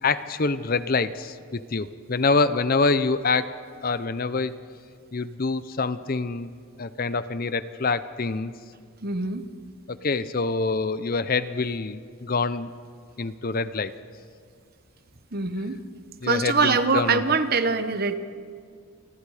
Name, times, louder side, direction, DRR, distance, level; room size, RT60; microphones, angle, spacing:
voice 1, 0.0-3.5 3.8-4.5 5.1-6.5 6.8-8.5 9.9-12.7 13.2-13.9 16.2-17.2, left 4 dB, 45° left, 14 dB, 0.7 m, -26 dB
voice 2, 9.0-9.4 15.3-15.8 16.2-18.1, right 4 dB, 45° right, 10 dB, 1.1 m, -23 dB
28.0 x 20.0 x 5.0 m, 2.1 s
head